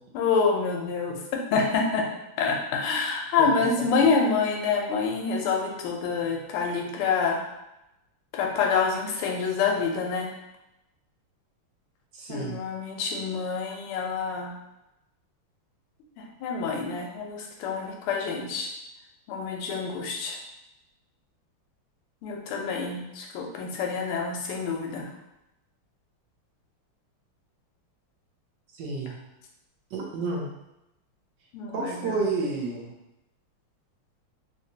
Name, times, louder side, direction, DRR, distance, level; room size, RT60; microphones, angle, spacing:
voice 1, 0.1-2.1 2.4-7.4 8.3-10.3 12.3-14.5 16.2-18.7 19.3-20.4 22.2-25.0 31.5-32.1, left 5 dB, 85° left, 1 dB, 1.5 m, -27 dB
voice 2, 12.1-12.6 28.7-29.2 29.9-30.5 31.7-32.9, right 3 dB, 70° right, -2 dB, 1.1 m, -30 dB
3.5 x 2.9 x 2.7 m, 0.91 s
omnidirectional pair, 2.4 m